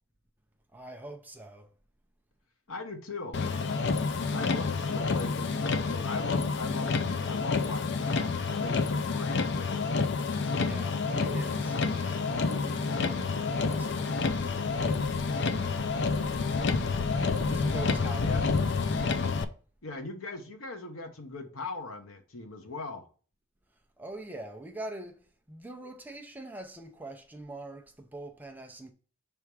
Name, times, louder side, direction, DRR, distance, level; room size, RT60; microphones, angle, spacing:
voice 1, 0.7-1.7 10.5-14.6 15.3-16.1 17.4-18.6 24.0-28.9, right 2 dB, 10° right, 0.5 m, -44 dB
voice 2, 2.7-3.4 4.3-9.9 18.2-18.4 19.8-23.1, left 3 dB, 75° left, 1.0 m, -40 dB
Motor vehicle (road), 3.3-19.4, left 4 dB, 55° left, 0.5 m, -29 dB
5.6 x 3.5 x 4.7 m
head